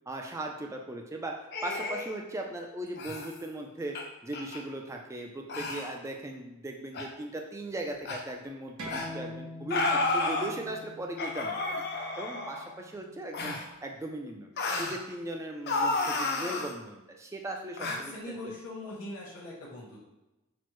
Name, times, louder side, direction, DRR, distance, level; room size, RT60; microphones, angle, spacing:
voice 1, 0.1-1.3 1.6-4.0 4.2-11.5 11.9-13.6 13.8-18.5, right 1 dB, 15° right, 2 dB, 0.3 m, -38 dB
sound 1, 1.5-2.2 3.0-3.3 3.9-4.0 4.3-4.6 5.5-5.9 6.9-7.1 8.1-8.2 8.9-9.1 9.7-10.5 11.2-12.7 13.3-13.7 14.6-15.0 15.7-16.7 17.8-18.0, left 2 dB, 50° left, 0.4 m, -31 dB
sound 2, 8.8-14.0, left 1 dB, 90° right, 0.9 m, -45 dB
voice 2, 17.9-20.0, left 1 dB, 75° left, -6 dB, 1.0 m, -42 dB
5.9 x 2.1 x 3.0 m, 1.0 s
head